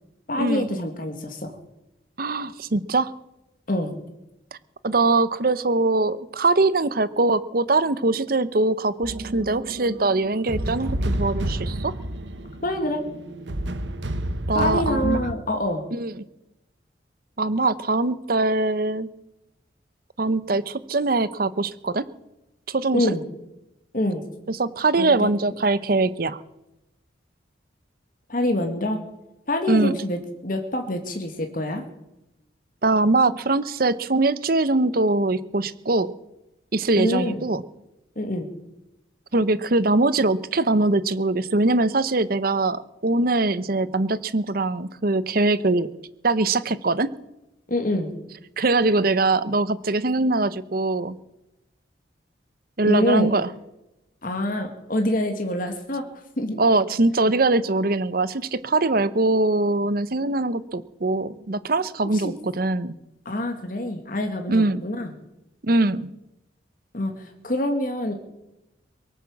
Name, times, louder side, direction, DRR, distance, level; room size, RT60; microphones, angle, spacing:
voice 1, 0.3-1.6 3.7-4.0 12.6-13.0 14.5-15.9 22.9-23.2 23.9-24.3 25.0-25.6 28.3-29.0 29.5-31.8 37.0-37.4 38.2-38.5 47.7-48.1 52.8-53.3 54.2-56.0 56.4-56.6 62.1-62.3 63.3-65.2 66.9-68.1, left 1 dB, 45° left, 5 dB, 1.9 m, -26 dB
voice 2, 2.2-3.1 4.8-11.9 14.5-15.2 15.9-16.1 17.4-19.1 20.2-22.0 22.7-23.1 24.5-26.4 29.7-29.9 32.8-36.1 36.7-37.6 39.3-45.9 46.2-47.1 48.6-51.2 52.8-53.5 56.6-63.0 64.5-64.8 65.6-66.1, right 2 dB, 50° right, 16 dB, 0.8 m, -22 dB
sound 1, 9.0-15.4, right 1 dB, 75° right, 1.1 m, -30 dB
23.0 x 8.2 x 7.2 m, 0.93 s
head